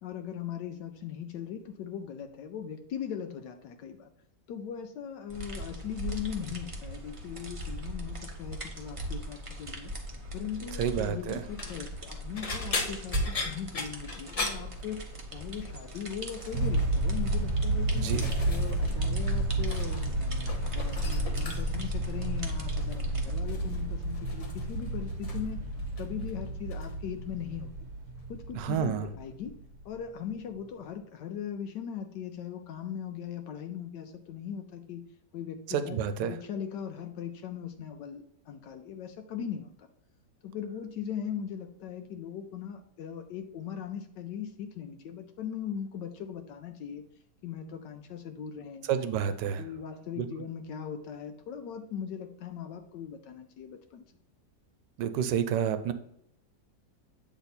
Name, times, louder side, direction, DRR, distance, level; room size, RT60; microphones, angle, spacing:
voice 1, 0.0-4.1 4.5-9.9 10.3-15.0 15.3-18.1 18.5-25.7 26.0-27.7 28.3-29.6 29.8-35.0 35.3-39.9 40.4-47.0 47.4-48.9 49.6-54.1, left 8 dB, 80° left, 6 dB, 1.2 m, -39 dB
sound 1, 5.3-23.4, right 1 dB, 30° right, 0.6 m, -40 dB
voice 2, 10.8-11.4 18.0-18.3 28.5-29.1 35.7-36.3 48.9-49.6 50.2-50.3 55.0-55.9, right 8 dB, 85° right, 11 dB, 1.2 m, -29 dB
sound 2, 11.4-11.8 12.4-15.4 15.7-16.0 16.4-16.9 17.6-19.0 19.2-20.1 20.4-21.9 22.8-23.1 23.5-25.5 25.8-26.3 26.7-26.9 28.2-28.3, left 3 dB, 65° left, 0.3 m, -39 dB
sound 3, 16.5-29.8, right 1 dB, 55° right, 1.1 m, -31 dB
8.1 x 3.4 x 4.1 m, 0.72 s
omnidirectional pair, 1.9 m